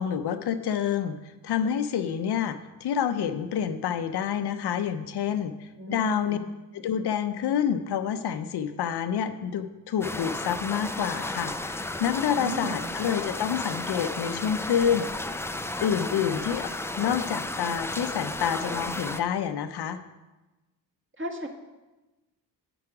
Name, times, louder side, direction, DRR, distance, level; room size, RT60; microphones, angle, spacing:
voice 1, 0.0-6.4 6.7-11.5 12.0-15.1 15.8-20.0, left 8 dB, 65° left, 9 dB, 0.7 m, -28 dB
voice 2, 5.8-6.4 12.4-12.9 21.2-21.5, right 2 dB, 25° right, 3 dB, 1.5 m, -35 dB
sound 1, 10.0-19.2, left 2 dB, 5° left, 0.4 m, -33 dB
8.6 x 6.1 x 4.8 m, 1.1 s
cardioid pair, 65°, 43 cm